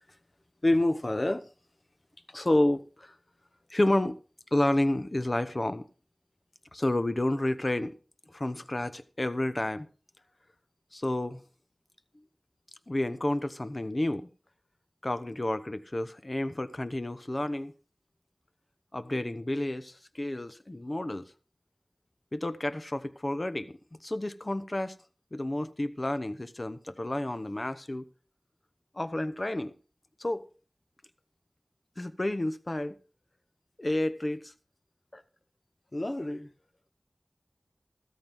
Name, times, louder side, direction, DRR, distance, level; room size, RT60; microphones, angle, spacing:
voice 1, 0.6-1.5 2.3-3.1 3.7-4.2 4.5-5.9 6.7-8.0 8.3-9.9 10.9-11.4 12.9-14.3 15.0-17.7 18.9-21.3 22.3-25.0 25.3-28.1 28.9-29.7 30.2-30.4 32.0-33.0 33.8-34.5 35.1-35.2 35.9-36.5, left 1 dB, 45° left, 1.0 m, -30 dB
14.0 x 13.5 x 3.6 m
wide cardioid pair, 40°, 0 cm